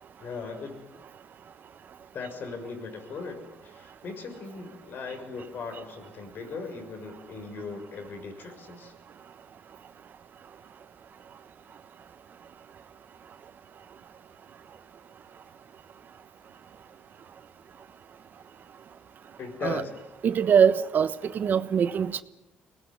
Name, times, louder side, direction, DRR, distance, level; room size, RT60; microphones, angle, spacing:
voice 1, 0.2-0.8 2.1-8.9 19.4-19.9, left 4 dB, 55° left, 5 dB, 6.3 m, -38 dB
voice 2, 20.2-22.2, right 7 dB, 50° right, 14 dB, 1.2 m, -23 dB
24.0 x 19.5 x 10.0 m, 0.97 s
cardioid pair, 90°, 4 cm